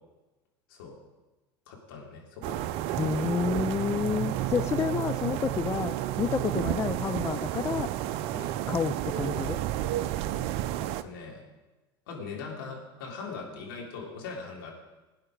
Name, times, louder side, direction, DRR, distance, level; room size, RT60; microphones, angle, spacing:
voice 1, 1.7-2.7 8.3-8.5 10.8-11.4 12.1-14.7, left 4 dB, 70° left, -1 dB, 3.4 m, -41 dB
sound 1, 2.4-11.0, right 13 dB, 55° right, 0.6 m, -31 dB
voice 2, 3.0-7.9 8.7-9.6, left 6 dB, 25° left, 13 dB, 0.4 m, -29 dB
17.0 x 9.3 x 5.1 m, 1.1 s
hypercardioid pair, 75°, 13 cm